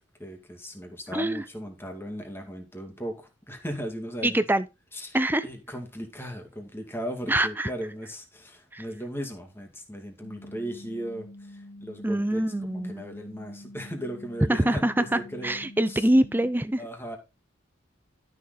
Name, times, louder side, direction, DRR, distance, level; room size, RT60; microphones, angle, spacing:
voice 1, 0.0-4.4 4.9-12.4 12.7-16.1 16.8-17.2, equal, 10° left, 2.2 m, -37 dB
voice 2, 1.1-1.4 4.2-4.7 5.1-5.4 7.3-7.7 8.7-8.8 12.0-13.0 14.5-16.8, right 1 dB, 10° right, 0.6 m, -24 dB
sound 1, 10.2-16.5, left 1 dB, 75° left, 1.3 m, -46 dB
12.0 x 6.6 x 4.0 m
head